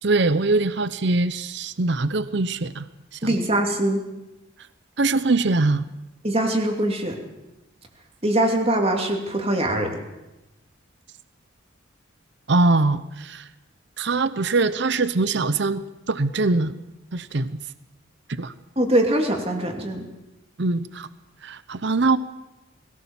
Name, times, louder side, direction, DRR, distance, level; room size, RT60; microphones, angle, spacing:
voice 1, 0.0-2.9 3.1-3.3 5.0-5.8 12.5-13.5 14.0-16.8 17.1-17.6 18.4-18.5 20.6-21.1 21.4-22.2, right 3 dB, 60° right, 14 dB, 0.7 m, -22 dB
voice 2, 3.2-4.0 6.2-7.2 8.2-10.0 18.8-20.1, right 1 dB, 30° right, 3 dB, 2.8 m, -22 dB
21.5 x 17.0 x 7.3 m, 1.0 s
head